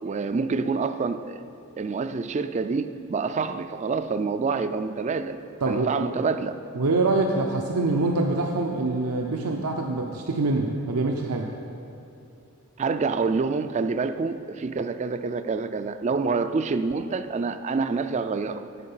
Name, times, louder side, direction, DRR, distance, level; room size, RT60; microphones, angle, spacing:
voice 1, 0.0-1.4 1.8-5.4 5.7-6.6 12.8-18.7, right 4 dB, 30° right, 10 dB, 0.3 m, -27 dB
voice 2, 5.6-6.0 6.7-11.5, right 2 dB, 85° right, 2 dB, 0.7 m, -25 dB
11.0 x 8.6 x 5.5 m, 2.7 s
head